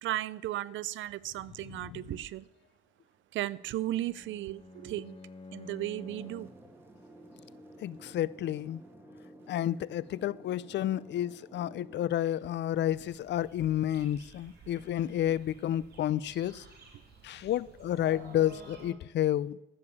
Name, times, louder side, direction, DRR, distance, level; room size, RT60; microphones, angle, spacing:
voice 1, 0.0-2.4 3.3-5.2 5.5-6.5, right 14 dB, 75° right, 0.5 m, -35 dB
voice 2, 1.6-2.2 7.8-8.8 9.5-16.7 17.2-19.6, left 12 dB, 65° left, 0.5 m, -31 dB
Bowed string instrument, 3.5-6.7, left 3 dB, 30° left, 1.0 m, -50 dB
sound 1, 5.9-12.1, right 1 dB, 10° right, 1.9 m, -53 dB
sound 2, 12.9-18.9, right 3 dB, 55° right, 3.5 m, -53 dB
14.5 x 7.0 x 7.0 m
cardioid pair, 90°, 20 cm